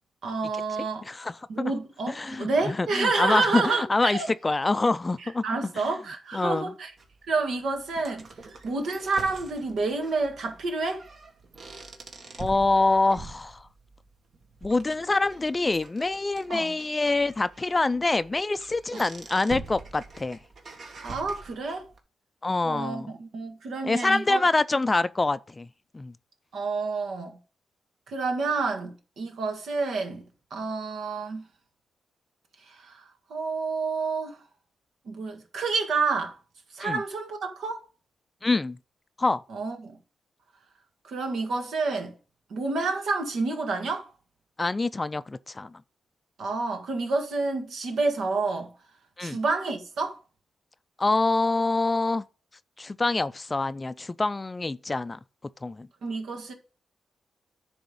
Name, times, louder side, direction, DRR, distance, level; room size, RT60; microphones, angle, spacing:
voice 1, 0.2-1.0 1.5-4.3 5.2-6.9 7.3-8.3 8.6-11.0 16.5-16.7 21.0-21.9 22.6-24.4 26.5-27.4 28.1-30.2 30.5-31.4 32.7-33.0 33.3-34.4 35.1-36.3 36.7-37.8 39.5-40.0 41.0-42.1 42.5-44.1 46.4-48.7 49.2-50.2 56.0-56.5, right 3 dB, 75° right, 1.8 m, -29 dB
voice 2, 1.0-1.7 2.1-5.7 6.3-6.7 12.4-13.6 14.6-20.4 22.4-23.1 23.8-25.7 25.9-26.1 36.8-37.0 38.4-38.8 39.2-39.4 44.6-45.7 49.2-49.4 51.0-52.2 52.8-55.2 55.6-55.9, left 3 dB, 25° left, 0.4 m, -26 dB
sound 1, 7.0-22.0, right 3 dB, 55° right, 1.5 m, -45 dB
10.5 x 3.5 x 7.0 m
cardioid pair, 85°, 0 cm